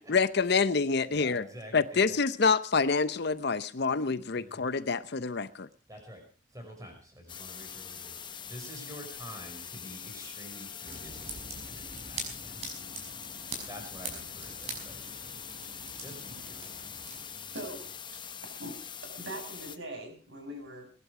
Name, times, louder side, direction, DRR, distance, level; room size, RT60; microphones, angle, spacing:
voice 1, 0.1-1.5 1.7-5.7, left 4 dB, 55° left, 0.7 m, -27 dB
voice 2, 1.1-2.2 4.3-4.7 5.9-6.2 6.5-8.2 8.4-12.6 13.7-15.3 16.0-17.0, equal, 15° right, 5.8 m, -48 dB
sound 1, 7.3-19.8, left 8 dB, 25° left, 0.8 m, -43 dB
sound 2, 10.8-18.0, right 3 dB, 30° right, 5.6 m, -44 dB
voice 3, 17.5-20.9, right 1 dB, 60° right, 6.7 m, -43 dB
22.0 x 11.5 x 4.8 m
head